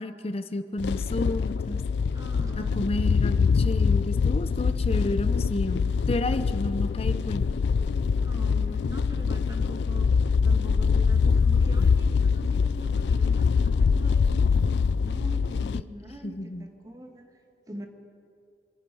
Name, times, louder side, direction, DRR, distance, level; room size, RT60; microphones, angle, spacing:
voice 1, 0.0-1.8 2.6-7.5 15.7-15.8 16.2-16.7, left 1 dB, 35° left, 11 dB, 0.7 m, -31 dB
sound 1, 0.8-15.8, left 5 dB, 65° left, 0.3 m, -24 dB
voice 2, 2.1-2.9 8.2-10.1 10.4-14.7 15.0-17.2 17.7-17.9, right 1 dB, 20° right, 4 dB, 1.4 m, -43 dB
25.5 x 9.9 x 5.6 m, 2.4 s
head